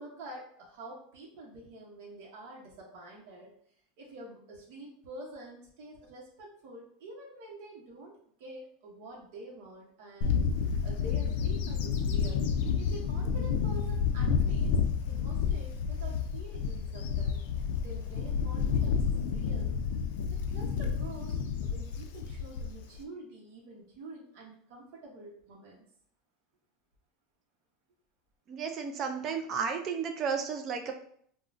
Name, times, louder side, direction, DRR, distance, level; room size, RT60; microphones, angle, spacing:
voice 1, 0.0-3.5 4.0-12.5 12.8-14.7 15.1-17.4 17.8-19.7 20.3-25.9, right 2 dB, 60° right, -2 dB, 0.8 m, -47 dB
Bird / Wind, 10.2-23.0, left 6 dB, 70° left, 0.3 m, -30 dB
voice 2, 28.5-30.9, right 6 dB, 30° right, 5 dB, 0.4 m, -33 dB
3.7 x 2.1 x 2.5 m, 0.62 s
supercardioid pair, 170°, 0 cm